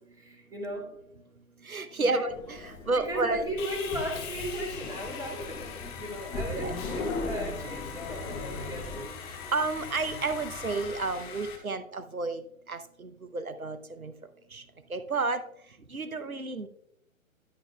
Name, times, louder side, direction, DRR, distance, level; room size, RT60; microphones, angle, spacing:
voice 1, 0.1-0.9 1.9-2.3 2.8-9.0, equal, 10° right, -1 dB, 2.4 m, -36 dB
voice 2, 1.6-2.3 2.9-3.5 6.5-6.7 9.5-12.4 12.7-14.1 14.5-14.6 14.9-15.4 15.9-16.7, right 3 dB, 90° right, 10 dB, 0.9 m, -31 dB
sound 1, 2.3-9.1, left 2 dB, 10° left, 0.7 m, -39 dB
Sawing, 3.6-11.6, left 6 dB, 25° left, 2.8 m, -41 dB
11.0 x 9.3 x 2.3 m, 0.77 s
figure-of-eight pair, 125°, 41 cm